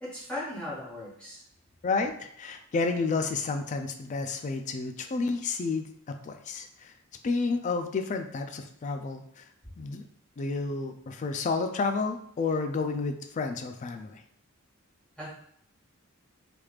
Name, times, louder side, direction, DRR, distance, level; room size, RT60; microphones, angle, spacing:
voice 1, 0.0-1.4 15.2-15.3, left 1 dB, 5° left, -8 dB, 1.2 m, -37 dB
voice 2, 1.8-6.9 7.2-9.4 9.8-10.0 10.4-14.2, left 4 dB, 35° left, 7 dB, 0.3 m, -31 dB
3.4 x 3.2 x 2.4 m, 0.68 s
head